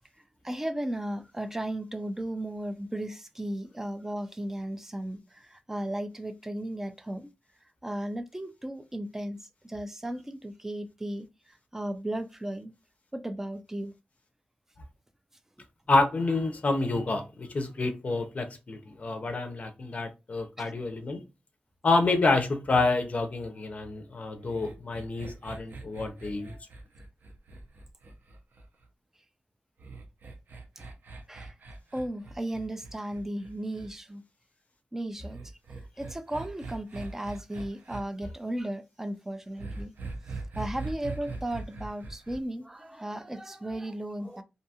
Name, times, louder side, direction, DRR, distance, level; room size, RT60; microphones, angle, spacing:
voice 1, 0.4-7.3 7.8-12.7 13.1-13.9 20.6-20.7 30.8-30.9 31.3-31.6 31.9-34.2 34.9-35.4 36.0-39.9 40.3-44.4, right 1 dB, 10° right, 0.3 m, -35 dB
voice 2, 15.9-21.2 21.8-26.6, left 3 dB, 45° left, 0.5 m, -28 dB
sound 1, 24.4-28.9 29.8-33.9 35.3-38.0 39.6-42.4, right 3 dB, 60° right, 0.6 m, -41 dB
2.6 x 2.2 x 2.7 m
wide cardioid pair, 150°, 4 cm